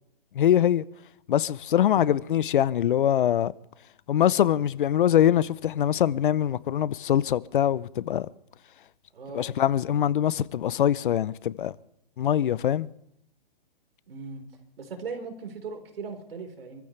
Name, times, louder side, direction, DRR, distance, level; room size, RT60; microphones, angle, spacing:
voice 1, 0.3-0.9 1.3-3.5 4.1-8.3 9.3-11.7 12.2-12.9, left 10 dB, 60° left, 0.7 m, -23 dB
voice 2, 9.1-9.5 14.1-14.4 14.8-16.8, right 4 dB, 75° right, 4.4 m, -38 dB
28.0 x 15.0 x 3.3 m
hypercardioid pair, 150°, 29 cm